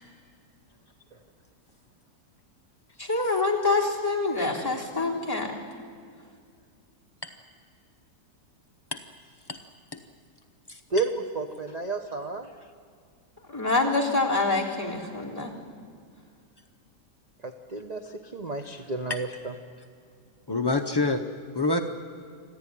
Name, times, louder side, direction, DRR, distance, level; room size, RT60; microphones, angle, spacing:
voice 1, 3.0-5.5 13.5-15.5, left 3 dB, 10° left, -4 dB, 3.5 m, -26 dB
voice 2, 10.9-12.5 17.4-18.1 18.3-19.5, right 3 dB, 30° right, 5 dB, 0.8 m, -31 dB
voice 3, 20.5-21.2 21.5-21.8, left 3 dB, 35° left, 5 dB, 0.4 m, -26 dB
26.5 x 15.0 x 9.9 m, 2.2 s
omnidirectional pair, 1.9 m